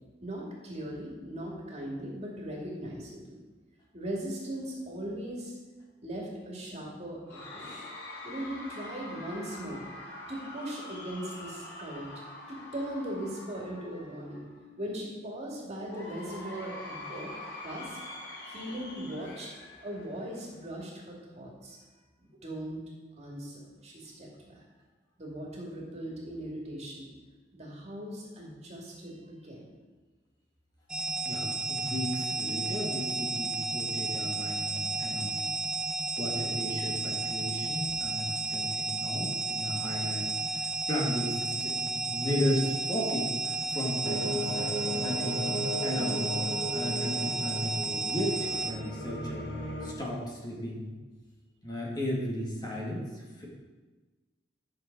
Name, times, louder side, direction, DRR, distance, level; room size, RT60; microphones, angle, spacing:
voice 1, 0.2-3.4 3.9-5.6 6.0-7.7 8.2-9.8 10.3-12.1 12.5-14.5 14.8-17.3 17.6-18.0 18.5-19.5 19.8-21.8 22.2-22.8 23.2-24.6 25.2-27.1 27.5-29.7, right 1 dB, 40° right, -2 dB, 2.4 m, -39 dB
Cheering / Crowd, 7.3-14.6 15.9-20.6, left 2 dB, 85° left, 3.1 m, -45 dB
voice 2, 7.6-7.9 31.2-35.5 36.2-46.4 46.7-49.5 49.8-50.9 51.6-53.4, equal, 25° left, -4 dB, 2.2 m, -35 dB
sound 1, 30.9-48.7, right 3 dB, 5° right, 1.0 m, -32 dB
sound 2, 44.0-49.9, left 1 dB, 70° left, 1.4 m, -36 dB
11.0 x 6.7 x 4.7 m, 1.2 s
head